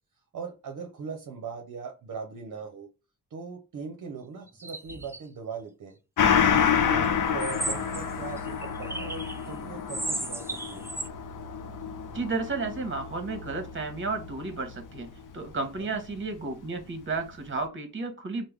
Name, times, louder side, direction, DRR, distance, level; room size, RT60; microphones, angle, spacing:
voice 1, 0.3-2.9 3.3-6.0 6.4-10.9 15.8-15.9, right 5 dB, 60° right, 0.7 m, -39 dB
sound 1, 4.5-5.2 6.2-6.6 7.4-9.5 9.9-11.1, right 2 dB, 10° right, 0.3 m, -35 dB
Gong, 6.2-15.1 15.5-15.6, left 7 dB, 60° left, 0.6 m, -29 dB
voice 2, 12.1-15.1 15.3-18.4, right 3 dB, 35° right, 1.0 m, -32 dB
3.4 x 2.1 x 3.2 m
cardioid pair, 85°, 35 cm